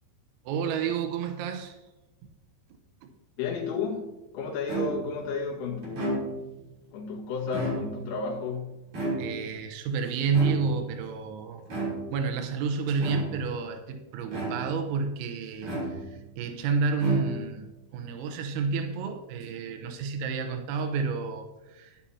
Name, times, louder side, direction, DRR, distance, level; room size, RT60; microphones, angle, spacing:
voice 1, 0.5-1.8 2.2-2.3 9.2-11.6 12.1-17.7 17.9-22.0, right 5 dB, 90° right, 6 dB, 3.6 m, -30 dB
voice 2, 3.4-6.5 6.9-8.8, left 4 dB, 75° left, -2 dB, 4.2 m, -32 dB
sound 1, 4.7-5.2 5.8-6.6 7.4-8.2 8.9-9.6 10.3-11.0 11.7-12.2 13.0-13.6 14.3-14.9 15.6-16.3 16.9-17.7, right 2 dB, 40° right, 3.9 m, -33 dB
13.0 x 10.0 x 2.8 m, 1.1 s
omnidirectional pair, 6.0 m